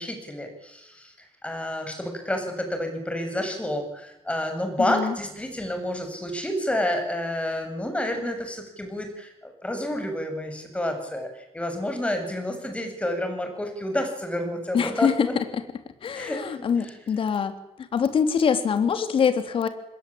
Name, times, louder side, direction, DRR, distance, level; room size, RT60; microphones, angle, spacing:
voice 1, 0.0-15.3 16.1-16.4 16.8-16.9, left 1 dB, 10° left, 5 dB, 8.0 m, -29 dB
voice 2, 4.8-5.1 14.7-15.3 16.0-17.5 17.9-19.7, left 7 dB, 55° left, 8 dB, 3.4 m, -24 dB
27.0 x 21.5 x 8.9 m, 0.87 s
cardioid pair, 125°, 11 cm